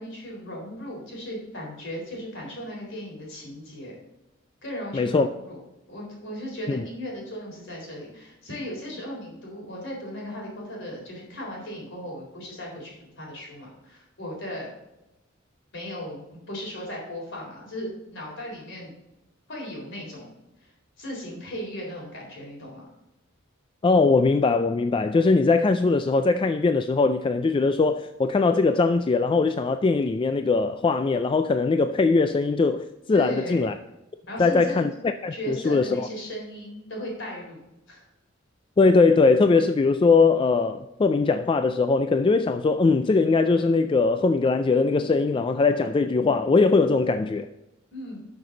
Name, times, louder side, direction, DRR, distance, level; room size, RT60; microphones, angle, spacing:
voice 1, 0.0-3.9 4.6-5.6 5.9-14.7 15.7-18.9 19.5-20.3 21.0-22.8 33.1-33.7 34.3-34.8 35.3-37.6 37.9-38.0 47.9-48.2, equal, 65° left, 3.9 m, -36 dB
voice 2, 4.9-5.3 6.7-6.9 23.8-33.8 34.4-34.9 35.2-36.1 38.8-47.5, left 4 dB, 25° left, 0.3 m, -21 dB
12.0 x 6.0 x 3.9 m
head